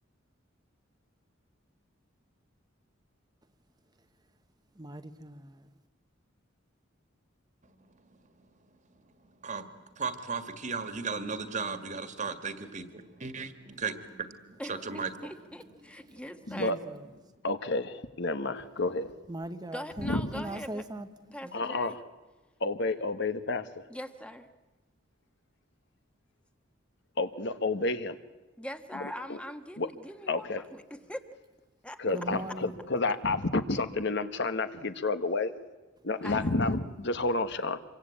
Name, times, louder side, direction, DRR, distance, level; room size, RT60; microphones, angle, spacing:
voice 1, 4.7-5.7 16.5-17.0 19.3-21.1 21.4-21.5 32.1-32.7, right 1 dB, 20° right, 1.0 m, -40 dB
voice 2, 9.4-13.5 13.8-13.9 14.4-15.1 16.1-16.2, right 5 dB, 40° right, 1.9 m, -35 dB
voice 3, 14.6-16.7 19.7-20.8 21.3-22.0 23.9-24.5 28.6-31.2 31.8-32.0 36.2-36.5, equal, 5° left, 1.3 m, -42 dB
voice 4, 16.5-16.8 17.4-19.2 20.0-20.3 20.9-21.0 21.5-22.0 22.6-23.9 27.2-28.2 28.9-29.4 29.8-29.9 30.3-30.6 32.0-35.5 36.0-37.8, left 3 dB, 60° left, 1.4 m, -30 dB
26.5 x 24.0 x 8.7 m
head